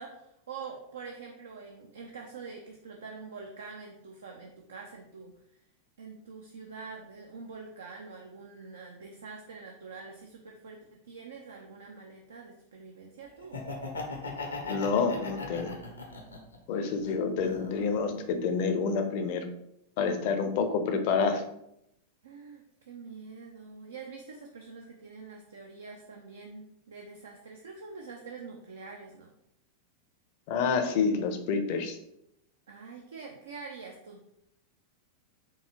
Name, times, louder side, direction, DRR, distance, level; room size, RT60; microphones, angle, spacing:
voice 1, 0.0-5.3 6.0-13.6 22.2-29.3 32.7-34.2, right 4 dB, 65° right, 1 dB, 0.5 m, -45 dB
Laughter, 13.4-16.6 17.0-18.1, left 3 dB, 75° left, 0.7 m, -38 dB
voice 2, 14.7-15.7 16.7-19.4 20.0-21.4 30.5-32.0, left 5 dB, 45° left, 7 dB, 0.6 m, -28 dB
4.6 x 2.7 x 2.9 m, 0.79 s
figure-of-eight pair, 90°, 0 cm